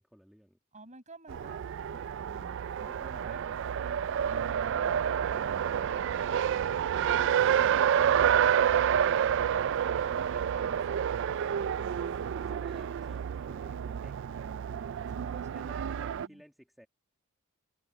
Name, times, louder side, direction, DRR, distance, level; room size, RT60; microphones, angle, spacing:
voice 1, 0.0-0.6 12.3-14.2 15.5-16.9, equal, ahead, 2.0 m, -56 dB
voice 2, 0.7-3.4 3.8-6.9 7.6-8.7 9.8-11.1 11.5-12.6 15.1-16.4, right 2 dB, 35° right, 5.7 m, -51 dB
Race car auto racing, 1.3-16.3, right 8 dB, 55° right, 0.3 m, -29 dB
head